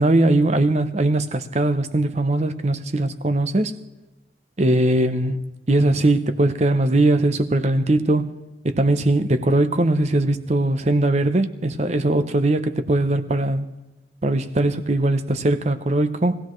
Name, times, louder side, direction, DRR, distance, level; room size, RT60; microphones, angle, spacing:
voice 1, 0.0-3.7 4.6-5.4 5.7-8.3 8.6-13.7 14.2-16.4, right 2 dB, 40° right, 0.7 m, -20 dB
22.0 x 16.0 x 3.2 m
head